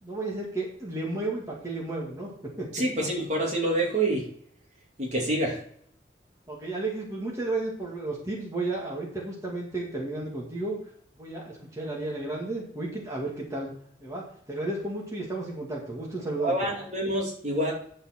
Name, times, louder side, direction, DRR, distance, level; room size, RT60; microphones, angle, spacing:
voice 1, 0.0-2.3 2.6-2.7 6.5-10.8 11.1-13.7 14.0-16.5, right 2 dB, 15° right, -3 dB, 2.1 m, -33 dB
voice 2, 2.7-4.2 5.0-5.6 16.4-17.7, right 1 dB, 40° right, -2 dB, 2.4 m, -27 dB
9.5 x 7.3 x 4.4 m, 0.64 s
head